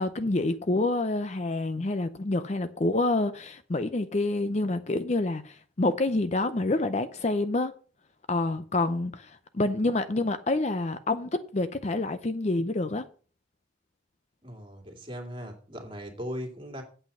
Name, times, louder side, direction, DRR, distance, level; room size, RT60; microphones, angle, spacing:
voice 1, 0.0-7.7 8.3-13.1, left 2 dB, 35° left, 0.6 m, -27 dB
voice 2, 14.4-16.8, equal, 25° right, 2.5 m, -38 dB
8.7 x 7.8 x 5.5 m
head